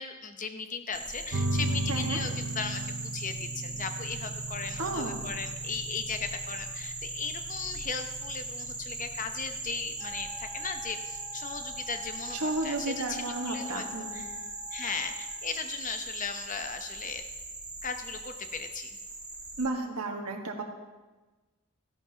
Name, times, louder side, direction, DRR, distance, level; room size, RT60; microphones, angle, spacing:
voice 1, 0.0-13.8 14.1-14.4 14.7-17.2 17.8-19.0, left 5 dB, 35° left, 7 dB, 0.8 m, -37 dB
sound 1, 0.9-19.7, right 2 dB, 5° right, 1.4 m, -40 dB
sound 2, 1.3-12.3, right 2 dB, 75° right, 0.6 m, -37 dB
voice 2, 1.9-2.2 4.8-5.3 12.3-14.2 19.6-20.6, right 2 dB, 90° right, 2 dB, 1.4 m, -33 dB
Wind instrument woodwind instrument, 10.0-15.4, left 3 dB, 75° left, 1.2 m, -47 dB
15.0 x 11.0 x 2.8 m, 1.2 s
head